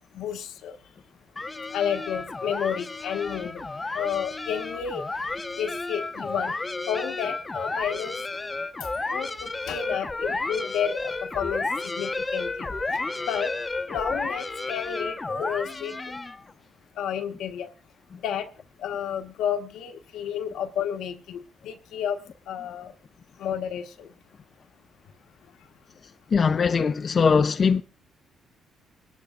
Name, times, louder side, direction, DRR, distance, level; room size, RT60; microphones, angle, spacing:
voice 1, 0.1-0.7 1.7-3.6 3.9-5.0 5.6-6.5 6.9-8.1 8.8-11.7 11.9-12.7 13.2-13.5 13.9-16.0 17.0-17.7 18.2-18.5 18.8-22.9 23.4-24.1, left 8 dB, 85° left, 1.3 m, -31 dB
sound 1, 1.4-16.5, left 3 dB, 20° left, 1.0 m, -32 dB
voice 2, 26.3-27.8, left 5 dB, 45° left, 0.6 m, -21 dB
22.0 x 11.5 x 2.5 m
cardioid pair, 90°, 0 cm